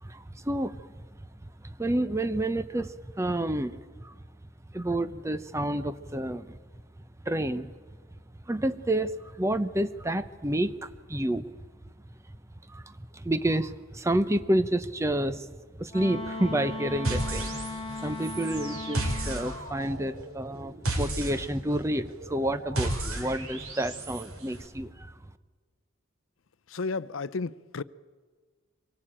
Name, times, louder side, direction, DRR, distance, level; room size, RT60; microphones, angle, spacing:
voice 1, 0.0-0.9 1.6-4.1 4.7-6.6 7.3-7.7 8.5-11.5 12.7-15.5 15.8-25.1, right 1 dB, 15° right, 0.7 m, -29 dB
Wind instrument woodwind instrument, 15.9-19.6, left 2 dB, 25° left, 1.9 m, -37 dB
sound 1, 17.0-24.2, right 1 dB, 90° right, 4.5 m, -33 dB
voice 2, 26.7-27.8, left 4 dB, 70° left, 0.6 m, -32 dB
24.5 x 18.0 x 8.9 m
head